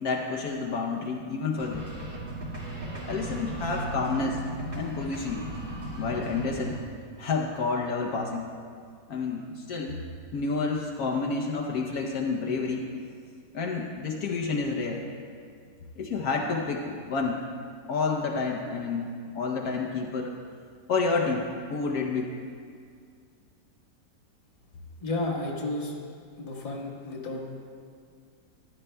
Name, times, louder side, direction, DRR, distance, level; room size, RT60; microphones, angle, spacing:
voice 1, 0.0-1.9 3.0-4.4 4.7-5.4 6.0-6.8 7.2-8.5 9.1-10.0 10.3-12.9 13.5-15.0 16.0-17.4 17.9-20.3 20.9-21.4 21.7-22.3, left 4 dB, 65° left, -1 dB, 1.2 m, -29 dB
sound 1, 1.6-6.8, right 1 dB, 35° right, 1.7 m, -36 dB
voice 2, 25.0-25.9 26.4-27.4, left 2 dB, 25° left, -2 dB, 1.1 m, -32 dB
14.5 x 11.0 x 2.2 m, 2.2 s
omnidirectional pair, 1.8 m